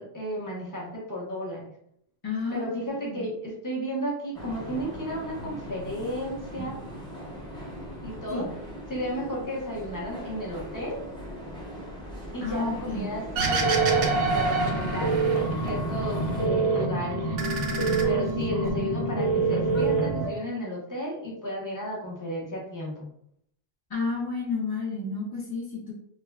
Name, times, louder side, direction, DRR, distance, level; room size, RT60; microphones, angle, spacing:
voice 1, 0.0-1.7 2.5-6.8 8.0-8.4 8.9-11.0 12.3-15.2 15.6-17.2 18.0-23.1, equal, 20° left, -5 dB, 0.7 m, -33 dB
voice 2, 2.2-2.8 3.1-3.3 6.6-6.7 8.3-8.5 12.4-13.1 23.9-25.9, left 4 dB, 40° left, -5 dB, 0.3 m, -31 dB
sound 1, 4.3-16.5, equal, 5° left, 1.1 m, -39 dB
sound 2, 13.4-20.3, right 3 dB, 70° left, 1.0 m, -26 dB
sound 3, 13.4-15.7 16.0-16.9 17.2-18.7, right 4 dB, 70° right, 0.7 m, -29 dB
3.3 x 2.2 x 2.2 m, 0.72 s
omnidirectional pair, 1.1 m